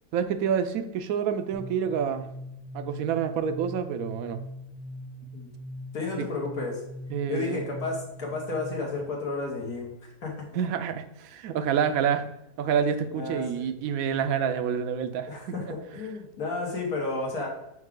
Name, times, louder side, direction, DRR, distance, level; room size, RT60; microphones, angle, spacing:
voice 1, 0.1-2.3 2.7-4.4 6.2-6.3 7.1-7.7 10.5-12.3 12.6-15.7, right 7 dB, 75° right, 10 dB, 1.0 m, -28 dB
sound 1, 1.5-9.1, equal, 40° right, 0.8 m, -42 dB
voice 2, 5.9-6.8 7.3-9.9 10.2-10.5 13.1-13.7 15.3-17.5, left 3 dB, 80° left, -2 dB, 1.8 m, -32 dB
6.4 x 4.7 x 3.6 m, 0.88 s
omnidirectional pair, 1.6 m